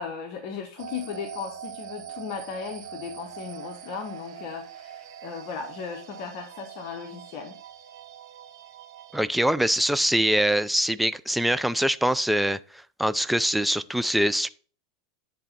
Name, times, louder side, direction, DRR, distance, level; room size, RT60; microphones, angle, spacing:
voice 1, 0.0-7.6, left 6 dB, 50° left, 1.3 m, -36 dB
sound 1, 0.8-9.2, right 10 dB, 75° right, 2.0 m, -43 dB
voice 2, 9.1-12.6 13.0-14.5, right 1 dB, ahead, 0.4 m, -23 dB
10.0 x 4.0 x 5.8 m
hypercardioid pair, 110°, 2 cm